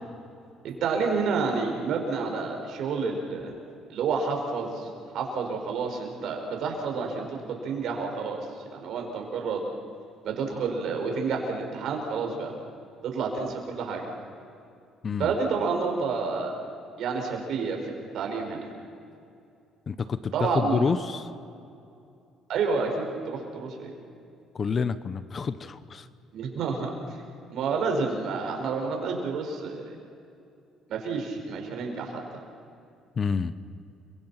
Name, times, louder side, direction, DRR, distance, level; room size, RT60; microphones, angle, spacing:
voice 1, 0.6-3.5 3.9-8.4 8.7-9.6 10.2-12.5 13.0-14.1 15.2-16.6 17.0-18.7 20.3-20.9 22.5-23.9 26.3-26.9 27.5-29.8 30.9-32.2, right 4 dB, 70° right, 2 dB, 5.6 m, -29 dB
voice 2, 19.9-21.3 24.5-26.1 33.2-33.5, left 5 dB, 40° left, 14 dB, 0.9 m, -28 dB
30.0 x 25.0 x 5.9 m, 2.6 s
cardioid pair, 100°, 0 cm